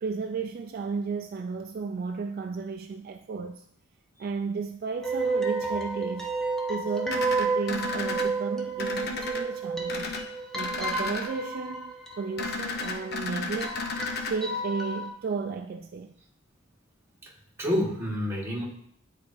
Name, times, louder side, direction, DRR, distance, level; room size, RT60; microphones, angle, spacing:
voice 1, 0.0-3.6 4.2-6.3 6.7-10.2 10.5-13.8 14.3-16.1, right 4 dB, 50° right, 0.3 m, -33 dB
sound 1, 5.0-15.1, right 3 dB, 5° left, 0.7 m, -31 dB
sound 2, 7.1-8.2 8.8-9.4 9.9-10.2 10.5-11.3 12.4-14.3, left 4 dB, 55° left, 0.8 m, -33 dB
voice 2, 17.6-18.6, equal, 15° right, 1.4 m, -29 dB
10.0 x 4.0 x 2.6 m
head